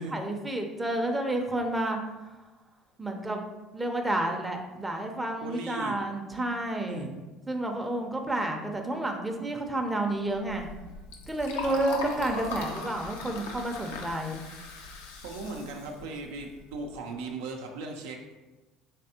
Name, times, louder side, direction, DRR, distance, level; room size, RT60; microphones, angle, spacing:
voice 1, 0.0-2.0 3.0-3.4 3.7-7.1 7.5-10.7 11.3-14.4, right 1 dB, 10° right, 3 dB, 0.5 m, -30 dB
voice 2, 5.4-6.0 6.9-7.2 11.6-11.8 15.2-18.3, right 3 dB, 80° right, 2 dB, 0.5 m, -38 dB
Liquid, 10.3-17.0, left 3 dB, 85° left, 0.5 m, -40 dB
3.3 x 3.3 x 2.8 m, 1.2 s
hypercardioid pair, 80°, 0 cm